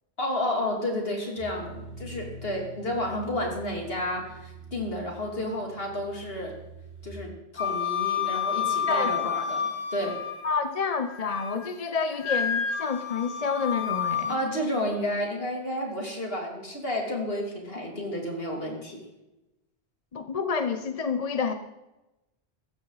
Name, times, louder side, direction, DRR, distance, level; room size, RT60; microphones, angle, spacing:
voice 1, 0.2-6.5 7.0-10.2 14.3-19.0, left 1 dB, 65° left, 0 dB, 3.2 m, -31 dB
sound 1, 1.4-7.1, right 1 dB, 75° right, 2.6 m, -45 dB
Wind instrument woodwind instrument, 7.6-10.6 11.0-11.7 12.2-14.4, left 7 dB, 85° left, 1.7 m, -29 dB
voice 2, 8.9-9.5 10.4-14.4 20.1-21.5, left 5 dB, 40° left, 9 dB, 0.8 m, -29 dB
15.0 x 13.5 x 4.0 m, 0.98 s
omnidirectional pair, 1.1 m